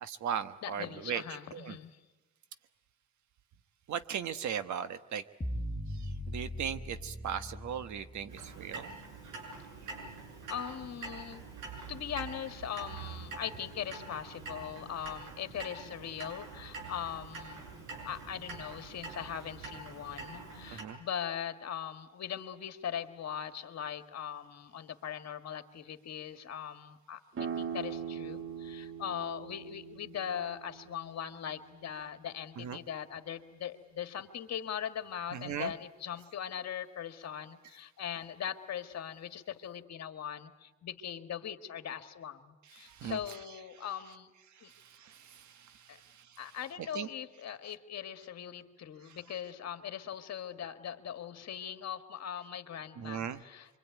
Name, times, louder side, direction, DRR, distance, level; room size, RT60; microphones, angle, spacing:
voice 1, 0.0-1.2 1.5-1.8 3.9-5.2 6.0-8.9 20.7-21.0 32.6-32.8 35.3-35.7 42.7-43.2 44.7-46.2 46.9-47.1 53.0-53.4, right 8 dB, 70° right, 11 dB, 1.3 m, -38 dB
voice 2, 0.6-2.0 10.5-11.4 11.9-17.7 18.1-44.3 44.6-44.7 45.9-46.0 46.4-53.8, left 9 dB, 60° left, 8 dB, 1.8 m, -40 dB
sound 1, 5.4-8.5, equal, 15° left, 1.7 m, -39 dB
Clock, 8.3-20.8, right 4 dB, 90° right, 6.8 m, -45 dB
sound 2, 27.3-32.7, right 7 dB, 45° right, 2.0 m, -42 dB
25.0 x 24.0 x 9.3 m, 1.1 s
cardioid pair, 90°, 30 cm